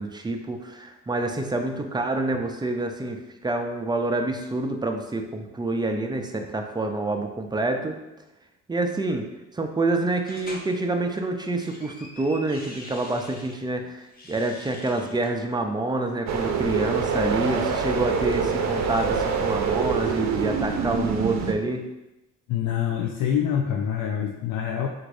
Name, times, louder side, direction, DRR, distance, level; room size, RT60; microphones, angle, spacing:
voice 1, 0.0-8.0 8.7-9.3 9.5-21.8, right 2 dB, 15° right, 4 dB, 0.5 m, -27 dB
sound 1, 10.3-10.7 11.4-13.6 14.0-15.3, left 1 dB, 30° left, 0.8 m, -44 dB
sound 2, 16.3-21.5, right 6 dB, 65° right, 0.6 m, -25 dB
voice 2, 22.5-24.9, left 9 dB, 75° left, 1 dB, 0.5 m, -25 dB
3.8 x 2.6 x 4.7 m, 0.98 s
cardioid pair, 90°, 30 cm